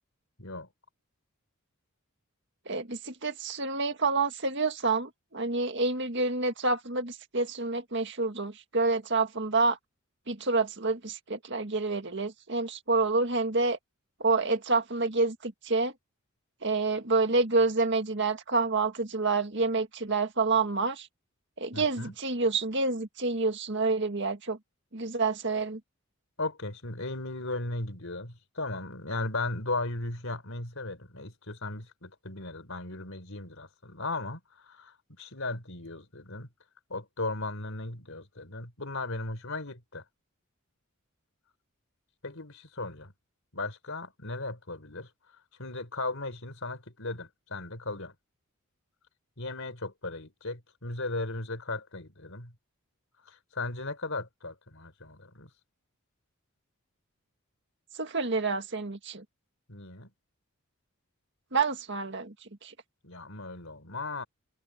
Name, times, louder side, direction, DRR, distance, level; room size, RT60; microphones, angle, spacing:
voice 1, 0.4-0.7 21.7-22.1 26.4-36.5 36.9-40.0 42.2-43.1 43.5-45.1 45.6-48.1 49.4-52.5 53.2-55.5 59.7-60.1 63.0-64.2, left 2 dB, 65° left, 4.4 m, -36 dB
voice 2, 2.7-9.8 10.3-13.8 14.2-15.9 16.6-21.1 21.6-24.6 24.9-25.8 57.9-59.2 61.5-62.7, right 3 dB, 55° right, 1.9 m, -28 dB
head